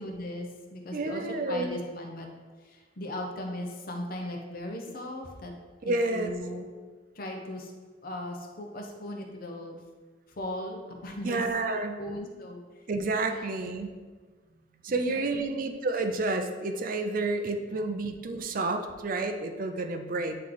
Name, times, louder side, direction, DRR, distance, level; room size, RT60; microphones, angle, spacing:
voice 1, 0.0-2.3 2.6-5.5 5.8-6.7 7.1-7.7 8.0-9.8 10.3-11.4 12.0-12.6 13.2-13.8 14.9-15.5 17.7-17.8, left 1 dB, 55° left, 2 dB, 0.8 m, -38 dB
voice 2, 0.9-1.7 5.8-6.3 11.2-12.0 12.9-13.9 14.8-20.4, right 2 dB, 50° right, 6 dB, 0.5 m, -30 dB
8.6 x 3.2 x 3.9 m, 1.4 s
head